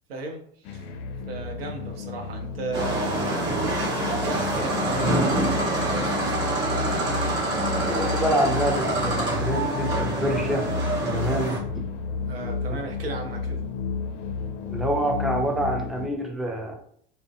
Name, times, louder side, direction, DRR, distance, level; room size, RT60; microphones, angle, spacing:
voice 1, 0.1-0.9 1.3-3.8 4.2-5.5 5.8-6.9 12.3-13.6, right 3 dB, 85° right, 3 dB, 0.6 m, -36 dB
sound 1, 0.7-16.1, left 4 dB, 65° left, 0.5 m, -32 dB
sound 2, 2.7-11.6, right 2 dB, 40° right, 1.0 m, -26 dB
voice 2, 7.7-10.7 11.0-11.6 12.7-12.8 14.7-16.7, right 1 dB, ahead, 1 dB, 0.5 m, -27 dB
2.4 x 2.1 x 2.5 m, 0.63 s
hypercardioid pair, 80°, 29 cm